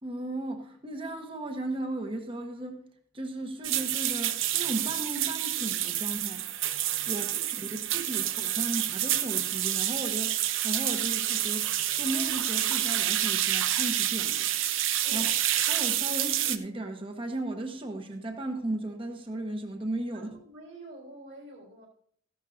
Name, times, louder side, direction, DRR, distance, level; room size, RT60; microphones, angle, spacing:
voice 1, 0.0-2.8 3.1-6.4 7.1-10.4 10.6-11.7 12.0-14.4 15.1-15.3 15.7-20.3, right 1 dB, 25° right, 1.1 m, -35 dB
sound 1, 3.6-16.6, right 12 dB, 75° right, 0.7 m, -28 dB
voice 2, 7.1-7.4 8.1-8.3 15.0-15.3 20.1-21.9, right 1 dB, 60° right, 3.7 m, -48 dB
14.5 x 11.5 x 2.7 m
head